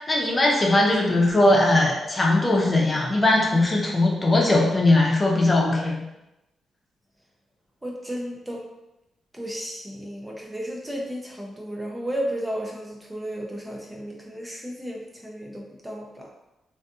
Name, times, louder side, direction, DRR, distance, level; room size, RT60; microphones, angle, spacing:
voice 1, 0.1-6.0, left 2 dB, 30° left, -2 dB, 0.6 m, -20 dB
voice 2, 7.8-8.6 9.3-16.3, equal, 10° right, -1 dB, 0.5 m, -33 dB
2.5 x 2.5 x 2.3 m, 0.94 s
cardioid pair, 70°, 0 cm